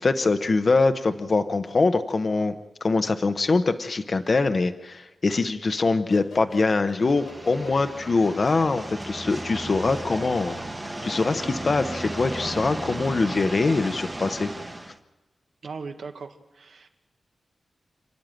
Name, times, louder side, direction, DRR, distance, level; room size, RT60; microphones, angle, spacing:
voice 1, 0.0-10.6 11.0-14.5, left 3 dB, 40° left, 9 dB, 0.9 m, -23 dB
sound 1, 6.1-12.9, left 4 dB, 85° left, 3.2 m, -46 dB
sound 2, 6.9-15.0, right 1 dB, 15° right, 1.0 m, -35 dB
voice 2, 15.6-16.9, right 4 dB, 75° right, 4 dB, 1.7 m, -38 dB
29.5 x 10.5 x 9.3 m, 1.2 s
wide cardioid pair, 170°, 0 cm